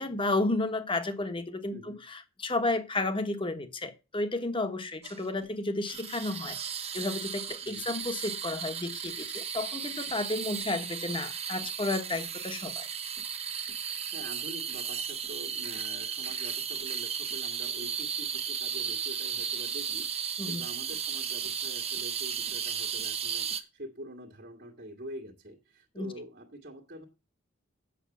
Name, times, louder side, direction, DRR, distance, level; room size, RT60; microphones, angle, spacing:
voice 1, 0.0-6.6 6.9-12.9 20.4-20.6 25.9-26.1, left 2 dB, 25° left, 1.2 m, -32 dB
sound 1, 5.0-5.5 5.9-23.6, right 7 dB, 30° right, 0.9 m, -35 dB
voice 2, 13.9-27.0, right 1 dB, 50° right, 1.9 m, -45 dB
8.6 x 6.6 x 7.1 m
head